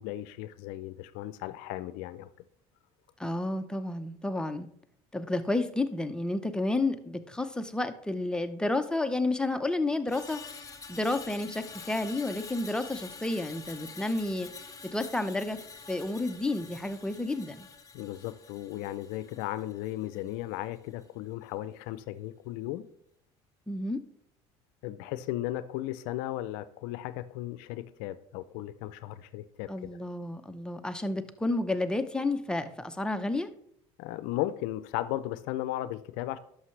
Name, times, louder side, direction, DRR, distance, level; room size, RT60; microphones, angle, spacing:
voice 1, 0.0-2.3 17.9-22.9 24.8-29.9 34.0-36.4, left 14 dB, 80° left, 0.5 m, -36 dB
voice 2, 3.2-4.7 5.1-10.5 10.9-14.5 14.8-15.6 15.9-17.7 23.7-24.0 29.7-33.5, left 2 dB, 5° left, 0.7 m, -31 dB
Screech, 10.1-20.4 20.8-21.0, left 5 dB, 25° left, 1.2 m, -47 dB
11.0 x 6.3 x 3.3 m
supercardioid pair, 90°, 14 cm